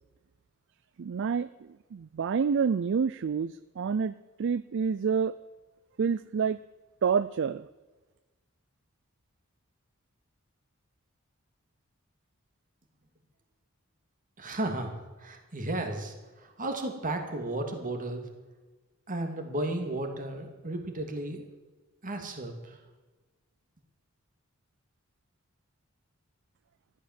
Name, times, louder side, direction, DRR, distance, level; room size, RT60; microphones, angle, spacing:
voice 1, 1.0-1.5 1.9-4.1 4.4-5.3 6.0-6.6 7.0-7.6, right 6 dB, 60° right, 15 dB, 0.4 m, -28 dB
voice 2, 14.4-14.9 15.2-18.2 19.1-21.4 22.0-22.8, right 1 dB, 40° right, 4 dB, 2.5 m, -34 dB
14.0 x 12.0 x 7.5 m, 1.2 s
head